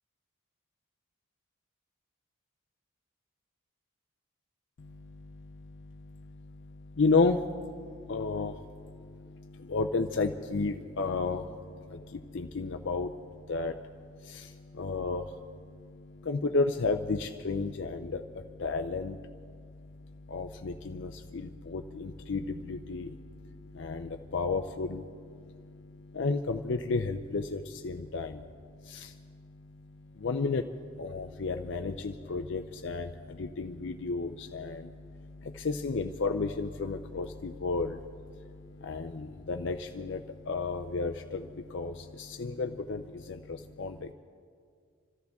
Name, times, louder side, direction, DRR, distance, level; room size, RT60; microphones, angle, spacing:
voice 1, 4.8-44.1, left 3 dB, 55° left, 6 dB, 0.5 m, -33 dB
27.0 x 14.0 x 3.6 m, 2.2 s
head